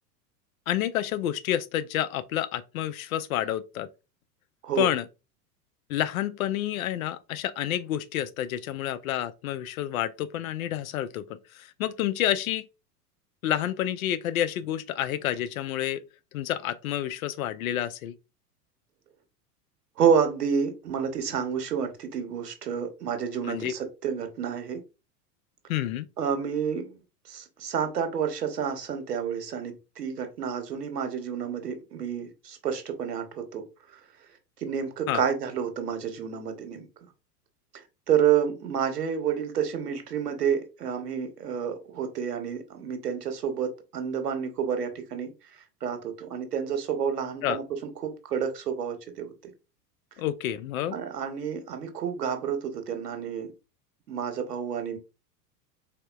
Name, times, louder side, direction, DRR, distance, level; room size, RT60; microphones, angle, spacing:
voice 1, 0.7-3.9 4.8-5.0 5.9-11.2 11.5-12.6 13.4-16.0 16.3-18.1 23.4-23.7 25.7-26.1 35.1-35.2 47.4-47.6 50.2-51.0, left 12 dB, 60° left, 0.6 m, -29 dB
voice 2, 20.0-24.8 26.2-27.0 27.3-33.6 34.6-36.9 38.1-45.3 45.8-47.6 48.0-49.3 50.9-53.5 54.1-55.0, right 7 dB, 70° right, 1.0 m, -29 dB
4.2 x 3.5 x 2.3 m
figure-of-eight pair, 90°, 48 cm